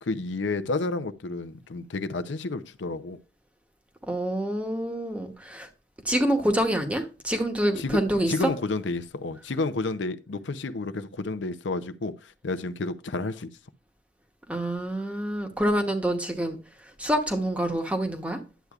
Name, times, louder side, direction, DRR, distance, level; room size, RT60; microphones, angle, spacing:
voice 1, 0.0-3.2 7.8-8.0 8.3-13.5, left 3 dB, 80° left, 0.6 m, -30 dB
voice 2, 4.1-5.7 6.0-8.5 14.5-16.6 17.0-18.4, right 1 dB, 5° right, 0.9 m, -26 dB
10.0 x 8.0 x 2.4 m
head